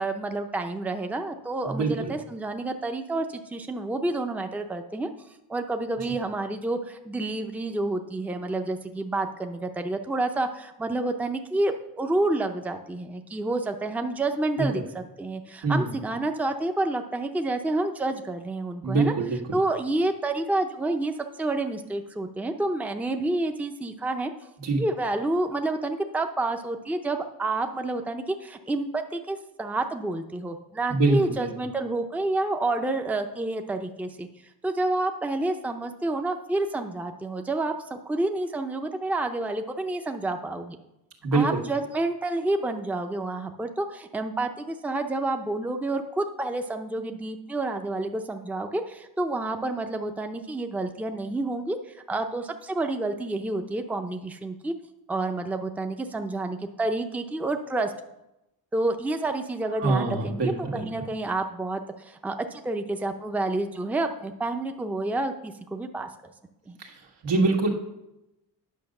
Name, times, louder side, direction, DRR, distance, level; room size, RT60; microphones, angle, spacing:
voice 1, 0.0-5.1 5.5-19.1 19.5-21.1 21.4-24.3 24.8-34.3 34.6-40.8 41.3-54.7 55.1-57.9 58.7-66.1 66.7-66.8, right 2 dB, 5° right, 6 dB, 0.6 m, -29 dB
voice 2, 1.6-2.2 6.0-6.1 14.6-14.8 15.6-16.0 18.8-19.4 24.6-24.8 30.9-31.5 41.2-41.6 59.8-61.1 66.8-67.7, right 3 dB, 85° right, 1 dB, 1.9 m, -25 dB
9.4 x 5.2 x 6.5 m, 0.91 s
cardioid pair, 105°, 42 cm